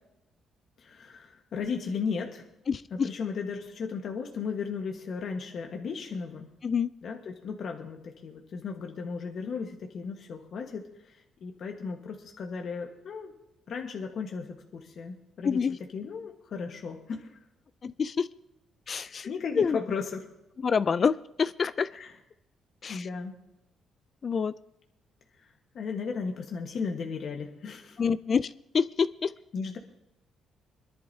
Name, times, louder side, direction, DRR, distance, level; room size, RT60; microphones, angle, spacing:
voice 1, 0.8-2.5 2.9-6.5 7.0-13.3 13.7-17.4 19.2-20.2 21.9-22.1 22.9-23.3 25.4-28.0 29.5-29.8, left 5 dB, 60° left, 2 dB, 1.3 m, -35 dB
voice 2, 2.7-3.1 6.6-6.9 15.4-15.8 17.8-18.3 18.9-19.3 19.6-19.8 20.6-21.9 22.8-23.1 24.2-24.5 28.0-29.3, left 6 dB, 45° left, 15 dB, 0.3 m, -27 dB
25.5 x 11.0 x 2.7 m, 0.90 s
cardioid pair, 90°, 0 cm